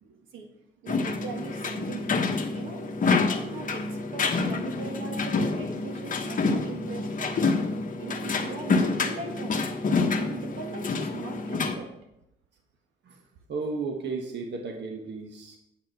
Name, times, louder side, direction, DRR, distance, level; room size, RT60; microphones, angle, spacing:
voice 1, 0.0-0.5 0.8-7.6 8.0-9.8 10.1-11.9, right 4 dB, 80° right, 3 dB, 1.7 m, -40 dB
sound 1, 0.9-11.7, left 4 dB, 40° left, 1.2 m, -28 dB
voice 2, 13.5-15.6, right 4 dB, 60° right, 2 dB, 1.4 m, -34 dB
9.6 x 6.8 x 4.8 m, 0.84 s
cardioid pair, 90°, 20 cm